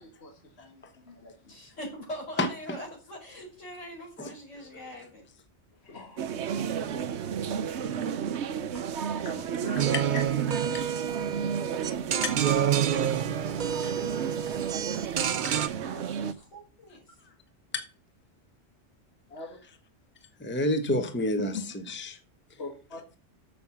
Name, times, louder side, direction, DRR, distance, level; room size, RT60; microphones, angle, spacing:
voice 1, 0.0-1.5 5.8-6.4 7.4-7.6 7.9-9.8 10.1-10.2 19.3-19.6 20.9-21.0 21.5-21.6 22.6-23.0, left 3 dB, 60° left, 1.8 m, -43 dB
voice 2, 1.5-5.2 15.8-17.0, equal, 85° left, 5.3 m, -42 dB
sound 1, 6.2-16.3, right 7 dB, 70° right, 1.0 m, -33 dB
sound 2, 9.8-15.7, right 9 dB, 55° right, 0.6 m, -28 dB
voice 3, 20.4-22.2, left 1 dB, 10° left, 0.9 m, -29 dB
7.0 x 6.8 x 7.0 m
omnidirectional pair, 1.2 m